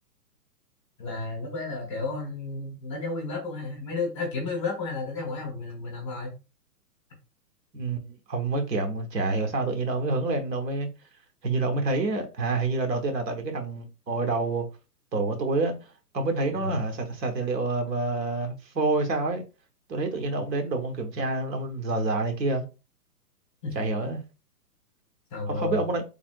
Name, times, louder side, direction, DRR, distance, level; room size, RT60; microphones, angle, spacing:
voice 1, 1.0-6.3 16.5-16.7 23.6-23.8 25.3-25.8, left 3 dB, 20° left, 0.7 m, -32 dB
voice 2, 8.3-10.9 11.4-14.7 15.1-15.7 16.1-19.4 19.9-22.6 23.7-24.2 25.5-26.0, right 3 dB, 85° right, 1.1 m, -27 dB
3.4 x 2.6 x 2.2 m
hypercardioid pair, 170°, 48 cm